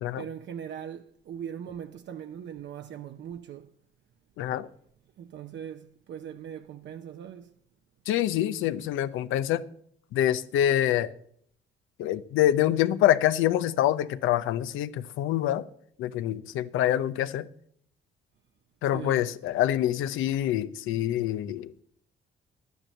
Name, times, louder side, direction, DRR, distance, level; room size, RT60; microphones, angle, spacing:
voice 1, 0.2-3.7 5.2-7.5 18.9-19.3, right 9 dB, 65° right, 0.7 m, -40 dB
voice 2, 4.4-4.7 8.1-9.6 10.1-11.1 12.0-15.7 16.0-17.5 18.8-21.7, left 12 dB, 90° left, 0.6 m, -26 dB
10.5 x 9.3 x 6.4 m
cardioid pair, 90°, 20 cm